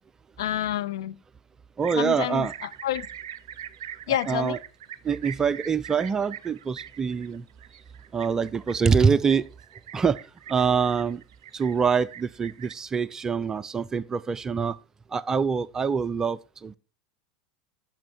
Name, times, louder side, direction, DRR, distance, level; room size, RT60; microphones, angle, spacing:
voice 1, 0.4-1.2 2.0-3.1 4.1-4.6, left 13 dB, 70° left, 0.5 m, -28 dB
voice 2, 1.8-2.5 4.1-4.6 5.0-7.4 8.1-9.4 9.9-10.2 10.5-11.2 11.5-14.8 15.1-16.8, right 6 dB, 20° right, 0.4 m, -25 dB
sound 1, 1.8-12.7, right 10 dB, 70° right, 0.6 m, -43 dB
10.5 x 6.3 x 4.4 m
hypercardioid pair, 85°, 3 cm